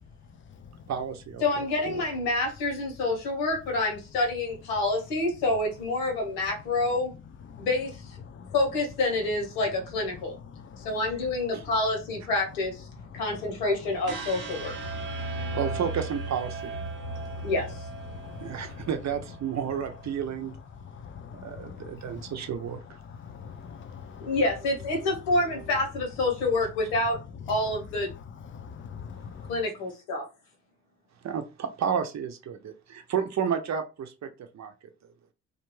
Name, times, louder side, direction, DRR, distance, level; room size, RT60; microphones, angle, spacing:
voice 1, 0.9-1.4 1.9-2.0 15.4-16.7 18.4-20.5 21.4-23.0 31.2-34.3 34.5-34.7, right 7 dB, 45° right, 0.7 m, -31 dB
voice 2, 1.4-7.1 7.6-8.2 8.5-10.4 10.8-12.9 13.1-14.7 17.4-17.9 24.2-27.2 27.5-28.1 29.5-30.2, left 2 dB, 80° left, 1.1 m, -27 dB
voice 3, 10.5-10.9 13.1-13.2 14.8-15.6 16.9-17.5 18.1-18.9 20.8-22.3 23.0-24.3 28.4-29.6, left 6 dB, 30° left, 0.5 m, -43 dB
sound 1, 14.1-20.1, right 3 dB, 85° right, 0.8 m, -37 dB
2.4 x 2.2 x 3.1 m
hypercardioid pair, 50°, 38 cm